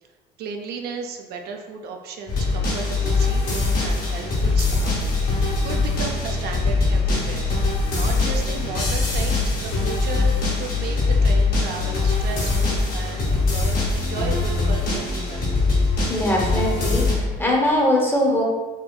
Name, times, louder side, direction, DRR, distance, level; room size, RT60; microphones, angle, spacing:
voice 1, 0.4-4.9 5.2-5.3 5.6-7.5 7.9-15.5, right 5 dB, 70° right, 3 dB, 0.4 m, -34 dB
sound 1, 2.3-17.1, left 3 dB, 60° left, 1.1 m, -22 dB
voice 2, 16.1-18.4, left 1 dB, 15° left, -2 dB, 0.7 m, -21 dB
4.3 x 2.3 x 2.2 m, 1.3 s
cardioid pair, 110°, 17 cm